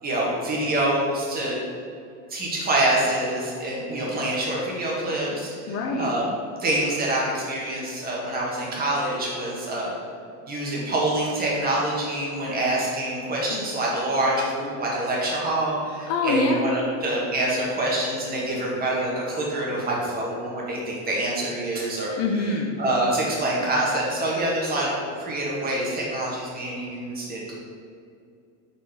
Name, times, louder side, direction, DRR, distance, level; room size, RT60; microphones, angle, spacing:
voice 1, 0.0-1.6 2.3-6.3 6.6-9.9 10.5-22.1 22.8-24.9 25.2-27.5, right 1 dB, 25° right, -4 dB, 1.5 m, -26 dB
voice 2, 5.7-6.1 13.5-13.6 16.1-16.6 22.2-22.7, left 2 dB, 50° left, 2 dB, 0.7 m, -24 dB
5.2 x 4.3 x 5.0 m, 2.4 s
cardioid pair, 150°, 34 cm